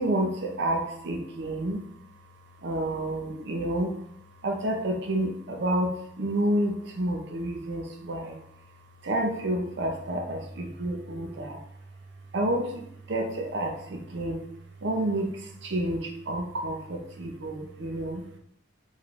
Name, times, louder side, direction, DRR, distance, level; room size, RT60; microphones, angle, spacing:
voice 1, 0.0-1.8 2.6-3.9 4.4-8.4 9.0-11.6 12.3-14.5 14.8-18.2, right 1 dB, 65° right, 3 dB, 0.6 m, -29 dB
3.2 x 3.1 x 2.5 m, 0.72 s
head